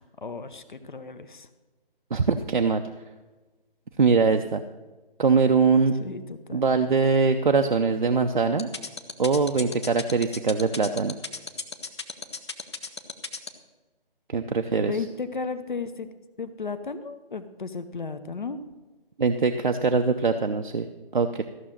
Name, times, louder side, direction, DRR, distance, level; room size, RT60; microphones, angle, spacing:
voice 1, 0.0-1.5 6.0-6.6 14.8-16.1 16.4-18.6, left 4 dB, 55° left, 10 dB, 0.8 m, -34 dB
voice 2, 2.1-2.8 4.0-4.6 5.2-5.9 6.5-8.7 9.2-11.1 14.3-15.0 19.2-20.9 21.1-21.4, right 4 dB, 55° right, 5 dB, 0.6 m, -22 dB
sound 1, 8.6-13.5, left 4 dB, 30° left, 0.6 m, -33 dB
14.0 x 6.2 x 7.4 m, 1.2 s
figure-of-eight pair, 155°, 29 cm